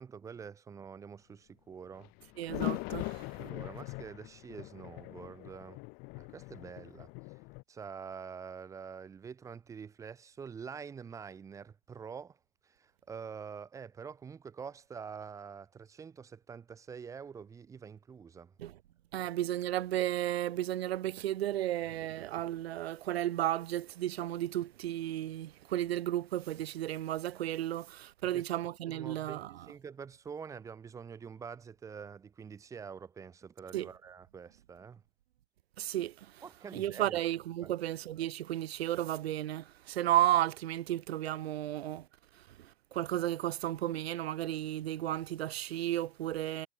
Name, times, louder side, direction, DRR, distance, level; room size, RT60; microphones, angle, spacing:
voice 1, 0.0-2.1 3.4-5.8 6.2-7.1 7.7-12.4 12.6-18.5 19.2-19.3 28.3-28.4 28.9-35.0 36.4-37.2 37.6-37.7, right 6 dB, 10° right, 1.6 m, -46 dB
sound 1, 2.0-7.6, left 31 dB, 25° left, 1.6 m, -41 dB
voice 2, 2.4-3.4 18.6-18.8 19.1-29.7 33.7-33.9 35.8-36.4 36.7-42.1 42.3-46.7, right 13 dB, 55° right, 0.6 m, -33 dB
hypercardioid pair, 155°, 37 cm